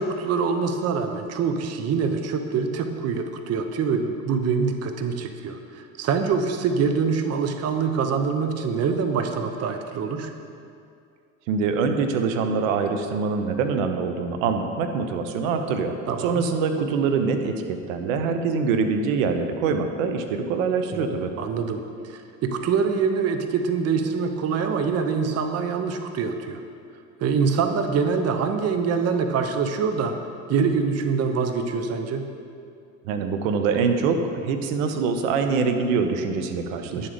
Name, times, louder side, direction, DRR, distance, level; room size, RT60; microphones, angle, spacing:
voice 1, 0.0-10.3 16.1-16.5 20.9-21.1 21.4-26.6 27.2-30.2 30.5-32.3 37.0-37.1, right 5 dB, 40° right, 6 dB, 0.9 m, -25 dB
voice 2, 11.5-15.9 16.2-21.3 33.1-37.1, right 5 dB, 70° right, 7 dB, 1.1 m, -24 dB
10.5 x 7.3 x 5.2 m, 2.4 s
hypercardioid pair, 80°, 40 cm